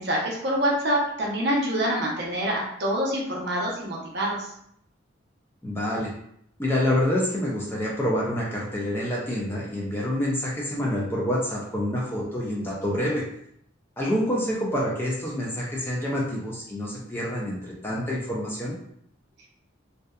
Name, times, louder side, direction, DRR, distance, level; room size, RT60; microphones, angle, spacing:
voice 1, 0.0-4.5, equal, 55° right, -3 dB, 0.7 m, -26 dB
voice 2, 5.6-6.1 6.6-13.2 14.0-18.8, left 1 dB, 10° left, -4 dB, 0.4 m, -27 dB
2.6 x 2.2 x 2.2 m, 0.71 s
head